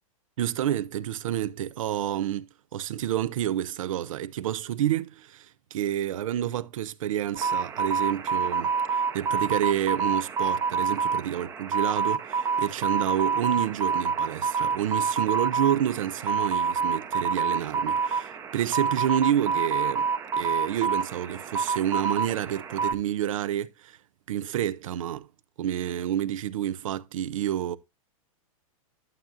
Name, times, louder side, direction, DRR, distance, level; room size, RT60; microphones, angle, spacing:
voice 1, 0.4-24.0 24.3-25.3 25.6-27.8, right 11 dB, 65° right, 0.7 m, -29 dB
sound 1, 7.4-22.9, right 5 dB, 15° right, 0.7 m, -27 dB
11.5 x 7.4 x 2.6 m
hypercardioid pair, 155°, 18 cm